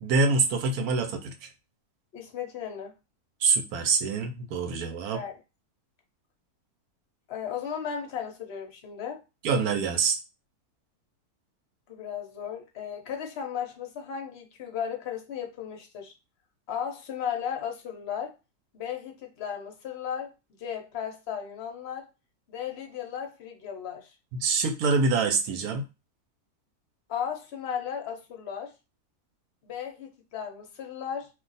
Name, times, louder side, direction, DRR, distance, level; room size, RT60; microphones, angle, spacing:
voice 1, 0.0-1.5 3.4-5.2 9.4-10.1 24.4-25.8, right 4 dB, 80° right, 1.1 m, -25 dB
voice 2, 2.1-2.9 5.1-5.4 7.3-9.2 11.9-16.1 16.7-18.3 18.7-20.3 20.6-22.1 22.5-24.1 27.1-28.7 29.6-31.3, left 8 dB, 55° left, 0.8 m, -35 dB
2.5 x 2.4 x 3.9 m
omnidirectional pair, 1.6 m